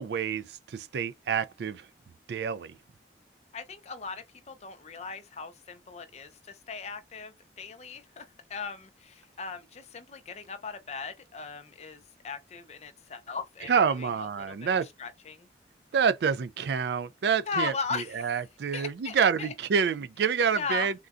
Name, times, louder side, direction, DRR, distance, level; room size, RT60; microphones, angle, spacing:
voice 1, 0.0-1.9 2.3-2.8 13.7-14.9 15.9-20.9, right 6 dB, 70° right, 0.3 m, -27 dB
voice 2, 3.5-14.5 14.8-15.5 17.5-18.4 18.7-19.5 20.5-20.9, left 5 dB, 40° left, 0.5 m, -38 dB
3.7 x 2.2 x 2.4 m
head